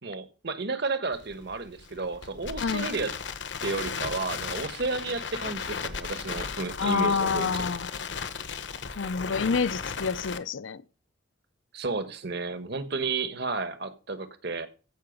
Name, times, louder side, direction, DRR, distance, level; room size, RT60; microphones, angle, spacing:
voice 1, 0.0-3.2 3.6-7.6 11.7-14.7, right 3 dB, 60° right, 1.2 m, -32 dB
Crackle, 1.1-10.4, left 6 dB, 65° left, 1.0 m, -35 dB
voice 2, 6.8-7.9 9.0-10.8, left 5 dB, 85° left, 0.6 m, -28 dB
15.0 x 5.7 x 5.3 m
head